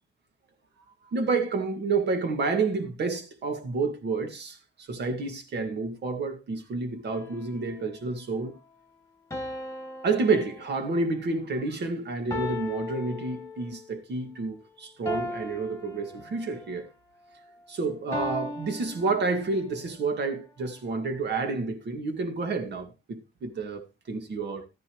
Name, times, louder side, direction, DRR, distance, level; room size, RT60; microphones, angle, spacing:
voice 1, 1.1-8.6 10.0-16.9 17.7-24.7, right 3 dB, 60° right, 2.1 m, -29 dB
sound 1, 7.1-8.0 9.3-11.2 12.3-13.9 15.1-16.7 18.1-19.7, left 2 dB, 15° left, 1.6 m, -37 dB
13.0 x 9.7 x 3.1 m
cardioid pair, 90°, 20 cm